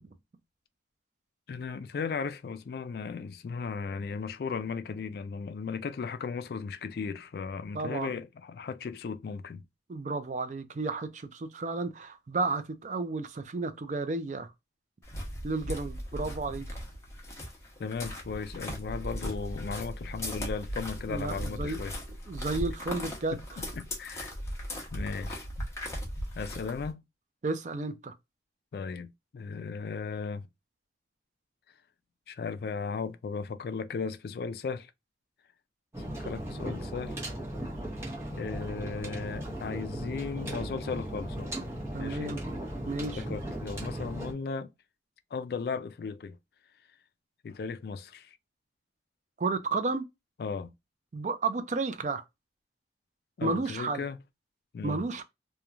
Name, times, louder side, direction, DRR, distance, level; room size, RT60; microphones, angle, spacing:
voice 1, 1.5-9.6 17.8-22.0 23.3-24.3 24.9-25.5 26.4-27.0 28.7-30.5 32.3-34.9 36.1-37.2 38.3-41.6 42.0-42.4 43.2-44.7 45.3-46.4 47.4-48.4 50.4-50.7 53.4-54.2 54.7-55.0, left 5 dB, 60° left, 0.3 m, -36 dB
voice 2, 7.7-8.2 9.9-14.5 15.4-16.7 21.1-21.8 22.3-23.4 27.4-28.1 41.9-42.4 42.9-43.2 49.4-50.0 51.1-52.2 53.4-54.0 54.8-55.2, right 3 dB, 40° right, 0.4 m, -32 dB
sound 1, 15.0-26.9, equal, 15° left, 0.8 m, -38 dB
sound 2, 35.9-44.3, right 1 dB, 15° right, 0.8 m, -37 dB
3.0 x 2.2 x 2.3 m
head